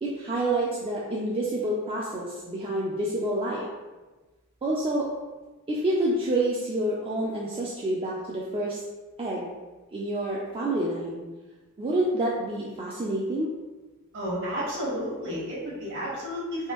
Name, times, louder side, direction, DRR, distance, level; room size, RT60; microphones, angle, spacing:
voice 1, 0.0-3.7 4.6-5.1 5.7-8.8 9.2-9.5 9.9-11.2 11.8-13.5, right 1 dB, 25° right, -5 dB, 0.3 m, -28 dB
voice 2, 14.1-16.7, equal, 55° right, -6 dB, 1.2 m, -31 dB
3.4 x 2.5 x 2.9 m, 1.2 s
head